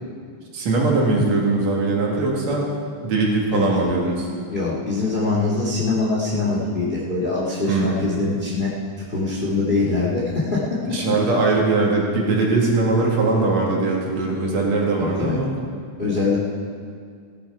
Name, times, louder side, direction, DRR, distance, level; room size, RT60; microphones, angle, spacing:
voice 1, 0.5-2.7 3.0-4.3 7.7-8.2 10.9-15.6, right 3 dB, 60° right, -2 dB, 3.3 m, -21 dB
voice 2, 4.5-10.6 15.0-15.4 16.0-16.4, left 3 dB, 25° left, -5 dB, 1.2 m, -23 dB
17.0 x 10.5 x 4.7 m, 2.2 s
omnidirectional pair, 3.7 m